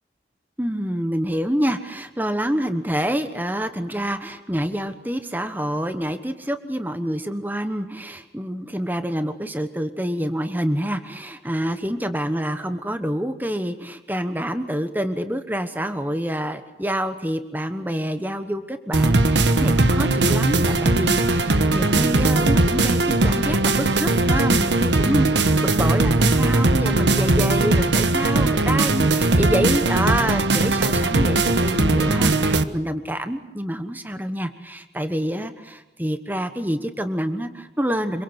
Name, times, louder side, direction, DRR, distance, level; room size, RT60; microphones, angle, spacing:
voice 1, 0.6-38.2, equal, 10° right, 8 dB, 1.2 m, -27 dB
sound 1, 18.9-32.6, right 2 dB, 90° right, 1.4 m, -19 dB
27.0 x 24.0 x 8.1 m, 0.98 s
head